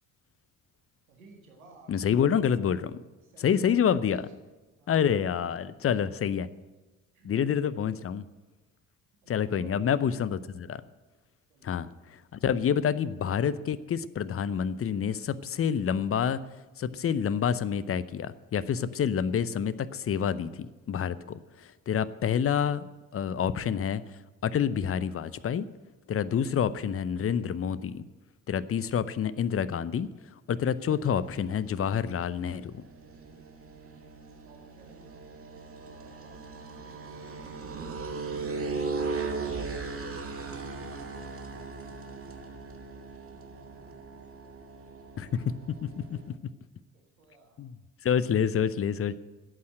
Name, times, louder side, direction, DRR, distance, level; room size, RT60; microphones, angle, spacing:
voice 1, 1.1-1.9 3.2-4.0 4.8-6.0 7.1-7.3 9.2-9.8 11.5-11.7 34.4-35.3 35.8-36.4 46.9-47.6, right 3 dB, 85° right, 1 dB, 1.8 m, -58 dB
voice 2, 1.9-3.0 3.4-4.3 4.9-6.5 7.2-8.2 9.3-10.8 11.6-16.4 16.8-22.9 23.1-24.0 24.4-25.7 26.1-28.0 28.5-30.1 30.5-32.8 45.2-45.5 45.8-46.3 47.6-47.7 48.0-49.1, left 8 dB, 35° left, 16 dB, 0.8 m, -28 dB
sound 1, 30.7-46.3, right 4 dB, 30° right, 2.0 m, -38 dB
12.5 x 8.5 x 7.6 m, 1.2 s
figure-of-eight pair, 50°, 41 cm